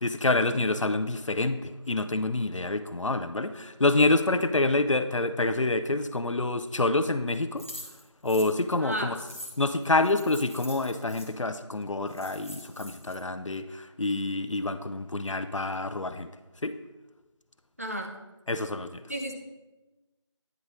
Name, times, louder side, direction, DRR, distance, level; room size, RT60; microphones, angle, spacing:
voice 1, 0.0-7.6 8.2-9.2 9.6-16.3 16.6-16.7 18.5-19.0, left 2 dB, 85° left, 10 dB, 0.5 m, -27 dB
sound 1, 7.6-11.3 11.8-11.9 12.1-13.2, equal, 25° left, 0.8 m, -44 dB
voice 2, 17.8-18.1 19.1-19.3, right 1 dB, 30° right, 2 dB, 0.6 m, -32 dB
9.4 x 4.0 x 3.8 m, 1.1 s
figure-of-eight pair, 170°, 16 cm